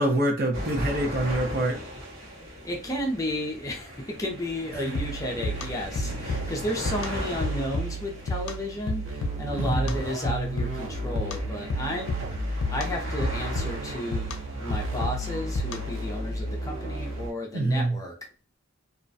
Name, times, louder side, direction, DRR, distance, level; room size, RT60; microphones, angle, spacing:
voice 1, 0.0-1.8 9.5-9.9 17.5-18.0, right 1 dB, 50° right, 0.7 m, -25 dB
sound 1, 0.5-17.3, equal, 70° right, 1.2 m, -39 dB
voice 2, 2.6-18.1, left 1 dB, 15° left, 0.5 m, -33 dB
sound 2, 4.9-16.1, equal, 85° left, 0.5 m, -33 dB
sound 3, 9.0-17.3, equal, 90° right, 0.7 m, -34 dB
2.4 x 2.1 x 2.5 m
head